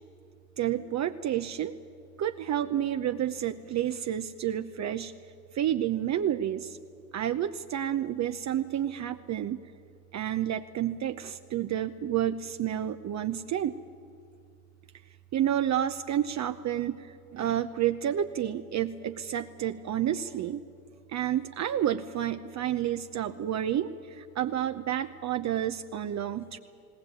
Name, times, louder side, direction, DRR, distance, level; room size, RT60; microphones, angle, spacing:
voice 1, 0.6-1.8 2.2-5.1 5.5-6.8 7.1-9.6 10.1-13.8 15.3-20.6 21.1-26.6, right 10 dB, 40° right, 8 dB, 0.9 m, -30 dB
19.0 x 19.0 x 9.2 m, 2.6 s
hypercardioid pair, 70°, 44 cm